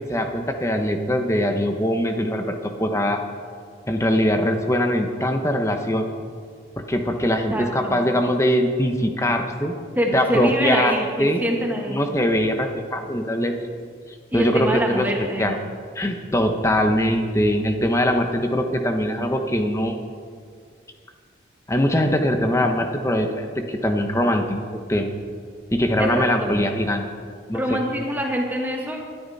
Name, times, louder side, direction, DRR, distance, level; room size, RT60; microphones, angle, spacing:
voice 1, 0.1-3.2 3.9-6.1 6.9-9.7 10.1-11.4 11.9-13.5 14.3-15.1 15.4-15.6 15.9-20.0 21.7-24.6 24.9-25.1 25.7-27.1 27.5-27.8, equal, 15° left, 4 dB, 1.2 m, -22 dB
voice 2, 7.5-8.1 9.9-12.1 14.3-15.5 26.0-26.6 27.5-29.0, equal, 10° right, 0 dB, 1.6 m, -25 dB
21.5 x 13.0 x 4.3 m, 2.1 s
head